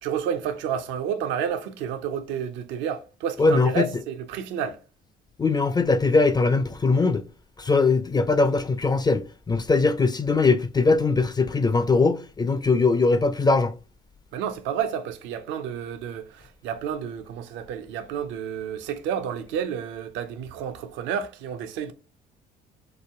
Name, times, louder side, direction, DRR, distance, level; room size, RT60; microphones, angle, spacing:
voice 1, 0.0-4.8 14.3-21.9, right 8 dB, 65° right, 0.5 m, -30 dB
voice 2, 3.4-4.0 5.4-7.2 7.6-13.7, left 3 dB, 20° left, 0.4 m, -21 dB
3.1 x 2.2 x 3.4 m
hypercardioid pair, 55°, 21 cm